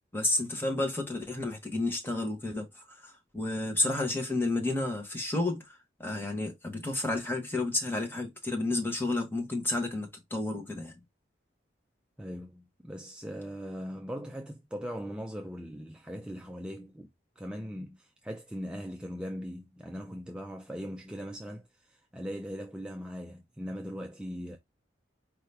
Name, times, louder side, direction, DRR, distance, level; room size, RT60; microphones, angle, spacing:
voice 1, 0.1-10.9, left 2 dB, 10° left, 1.1 m, -31 dB
voice 2, 12.2-17.1 17.4-24.6, equal, 5° right, 0.3 m, -40 dB
4.7 x 2.8 x 3.3 m
head